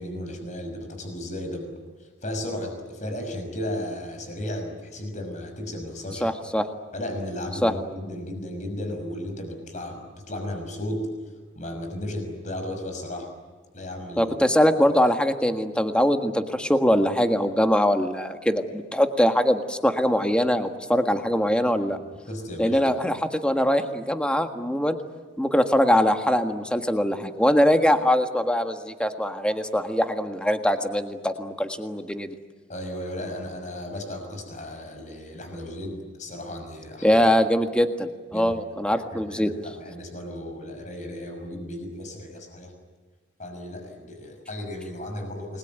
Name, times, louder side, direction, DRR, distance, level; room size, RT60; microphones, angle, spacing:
voice 1, 0.0-1.7 2.0-6.3 6.9-11.1 11.6-13.3 13.7-14.3 22.2-22.8 32.7-37.2 38.3-38.5 38.9-42.7 43.4-45.6, left 1 dB, 40° left, 5 dB, 6.0 m, -34 dB
voice 2, 6.2-6.7 7.6-7.7 14.2-22.0 22.6-25.0 25.4-32.3 37.0-39.5, equal, 5° left, 7 dB, 1.6 m, -22 dB
29.5 x 21.5 x 9.3 m, 1.4 s
head